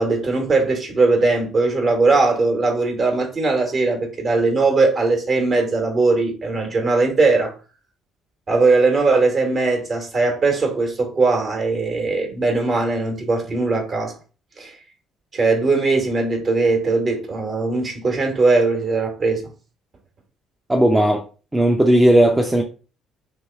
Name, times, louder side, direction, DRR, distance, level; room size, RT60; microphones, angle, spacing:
voice 1, 0.0-7.5 8.5-14.1 14.6-14.7 15.3-19.4, right 3 dB, 45° right, 1.4 m, -19 dB
voice 2, 20.7-21.2 21.5-22.6, right 1 dB, 15° right, 0.6 m, -15 dB
3.0 x 3.0 x 3.4 m
hypercardioid pair, 50°, 0 cm